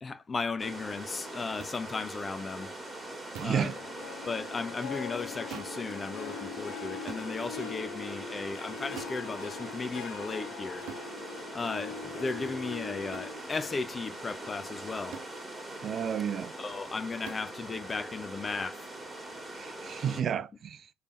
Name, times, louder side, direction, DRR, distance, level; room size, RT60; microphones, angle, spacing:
voice 1, 0.0-2.7 3.4-3.7 4.3-10.9 11.5-15.2 16.6-18.8, left 4 dB, 30° left, 0.6 m, -35 dB
sound 1, 0.6-20.2, right 1 dB, 15° right, 2.0 m, -42 dB
sound 2, 1.6-1.8 3.3-3.7 5.5-5.8 7.1-7.3 8.9-9.2 10.9-11.1 13.1-13.4 15.1-15.4 17.2-17.5, right 7 dB, 70° right, 0.8 m, -44 dB
voice 2, 3.4-3.8 15.8-16.5 19.5-20.9, right 8 dB, 50° right, 0.5 m, -32 dB
Harp, 3.5-16.2 16.6-17.0 17.5-17.6, left 6 dB, 75° left, 0.7 m, -43 dB
3.3 x 3.3 x 4.1 m
hypercardioid pair, 60°, 0 cm